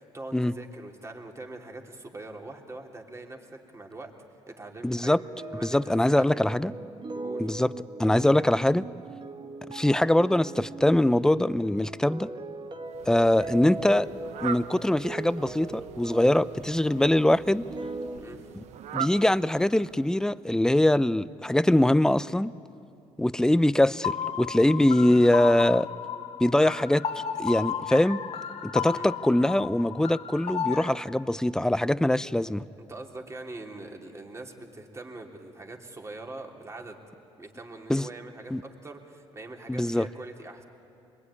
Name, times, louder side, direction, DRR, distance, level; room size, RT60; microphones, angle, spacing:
voice 1, 0.0-4.1 4.5-5.1 5.5-6.6 7.2-7.4 18.2-18.4 28.9-29.1 32.8-37.0 37.4-40.6, right 2 dB, 25° right, 2 dB, 3.3 m, -43 dB
voice 2, 4.8-5.2 5.6-6.7 7.4-7.7 8.0-8.8 9.7-12.3 13.1-14.1 14.4-17.6 18.9-22.5 23.2-25.9 26.4-27.0 27.4-28.2 28.6-32.6 37.9-38.1 38.5-38.6 39.7-40.1, left 1 dB, 5° left, 17 dB, 0.6 m, -23 dB
sound 1, 5.1-18.2, right 2 dB, 40° right, 2.2 m, -39 dB
Fowl, 12.9-20.2, right 9 dB, 75° right, 1.0 m, -41 dB
sound 2, 24.0-30.9, left 8 dB, 60° left, 1.8 m, -33 dB
25.5 x 21.5 x 9.8 m, 2.6 s
cardioid pair, 85°, 12 cm